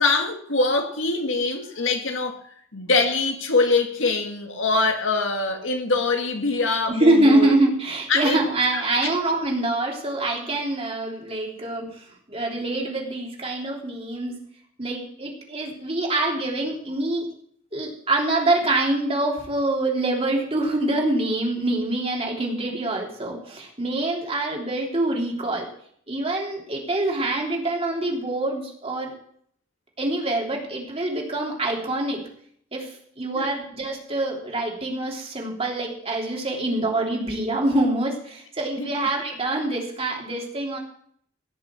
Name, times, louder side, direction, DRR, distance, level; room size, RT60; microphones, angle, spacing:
voice 1, 0.0-2.4 2.7-7.5 8.1-8.4 8.7-9.1 33.3-33.5 38.8-39.1, left 3 dB, 70° left, 4 dB, 2.0 m, -23 dB
voice 2, 7.0-14.4 14.8-17.2 17.7-25.7 26.1-29.1 30.0-32.2 32.7-40.8, right 2 dB, 30° right, -1 dB, 3.4 m, -25 dB
17.0 x 6.6 x 7.3 m, 0.64 s
head